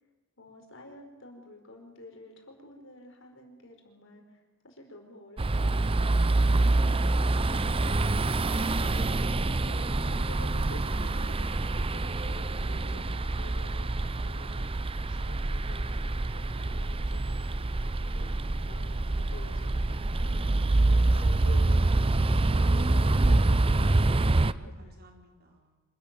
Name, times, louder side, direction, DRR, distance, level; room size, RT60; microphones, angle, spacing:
voice 1, 0.4-6.3 6.8-17.5 17.8-17.9 18.1-18.3 18.7-20.5 20.8-21.8 22.2-25.0, left 1 dB, 65° left, 3 dB, 4.8 m, -49 dB
sound 1, 5.4-24.5, right 2 dB, 25° right, 0.6 m, -26 dB
voice 2, 24.6-25.8, right 1 dB, 50° right, 2 dB, 4.3 m, -60 dB
26.0 x 13.5 x 9.1 m, 1.3 s
head